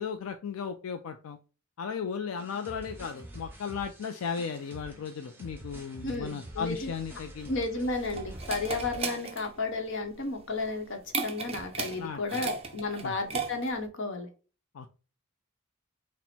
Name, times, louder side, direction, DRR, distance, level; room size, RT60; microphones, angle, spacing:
voice 1, 0.0-1.4 1.8-7.5 12.0-12.4 13.0-13.1 14.7-14.9, left 6 dB, 90° left, 6 dB, 0.4 m, -36 dB
sound 1, 2.4-9.0, right 1 dB, 10° right, 1.0 m, -46 dB
voice 2, 6.0-6.9 7.5-14.3, left 3 dB, 65° left, 5 dB, 0.9 m, -33 dB
sound 2, 7.4-13.9, right 5 dB, 30° right, 0.5 m, -37 dB
4.1 x 2.1 x 4.2 m, 0.35 s
head